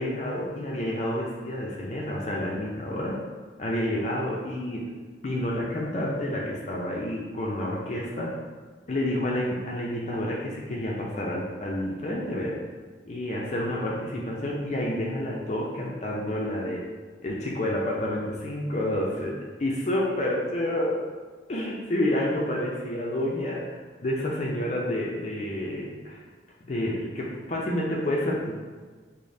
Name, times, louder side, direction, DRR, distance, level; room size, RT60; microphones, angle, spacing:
voice 1, 0.0-3.2 3.6-4.9 5.2-8.3 8.9-12.5 13.0-16.8 17.2-19.3 19.6-21.0 21.5-26.2 26.6-28.6, left 1 dB, 40° left, -3 dB, 0.4 m, -29 dB
5.0 x 2.1 x 2.6 m, 1.4 s
head